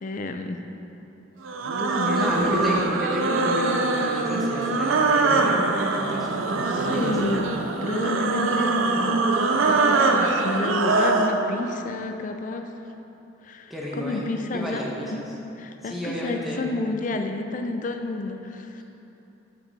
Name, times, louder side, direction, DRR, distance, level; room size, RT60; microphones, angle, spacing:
voice 1, 0.0-0.6 1.8-2.8 6.7-7.4 7.8-9.2 9.7-12.7 13.4-14.8 15.1-15.2 15.6-18.8, left 2 dB, 40° left, 6 dB, 0.4 m, -30 dB
sound 1, 1.4-11.4, right 3 dB, 85° right, 0.6 m, -23 dB
voice 2, 2.0-7.5 13.7-15.3 15.8-16.6, equal, ahead, -5 dB, 1.0 m, -32 dB
7.2 x 6.9 x 4.1 m, 2.9 s
head